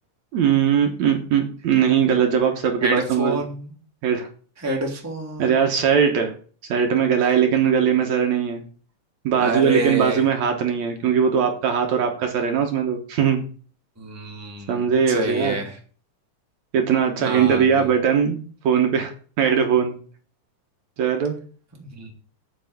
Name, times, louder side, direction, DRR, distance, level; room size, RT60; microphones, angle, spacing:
voice 1, 0.3-3.4 4.0-4.3 5.4-6.3 6.7-8.6 9.2-13.4 14.7-15.6 16.7-19.1 19.4-20.0 21.0-21.4, right 7 dB, 65° right, 4 dB, 2.3 m, -20 dB
voice 2, 2.8-3.7 4.6-5.7 9.4-10.2 14.0-14.8 15.1-15.8 17.2-17.9 21.9-22.1, right 1 dB, 5° right, 0 dB, 1.7 m, -27 dB
8.1 x 5.5 x 7.8 m, 0.42 s
omnidirectional pair, 3.7 m